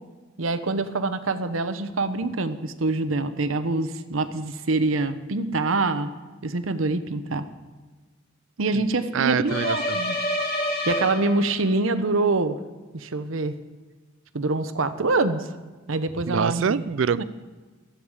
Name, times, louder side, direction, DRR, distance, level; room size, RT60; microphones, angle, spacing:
voice 1, 0.4-6.1 6.4-7.5 8.6-10.1 10.9-12.6 12.9-13.5 14.3-15.5 15.9-16.6 17.2-17.3, right 3 dB, 85° right, 10 dB, 0.9 m, -25 dB
voice 2, 9.1-10.0 16.3-17.2, right 6 dB, 70° right, 17 dB, 0.4 m, -25 dB
sound 1, 9.5-11.8, left 1 dB, 50° left, 3.0 m, -28 dB
15.5 x 13.0 x 5.0 m, 1.3 s
head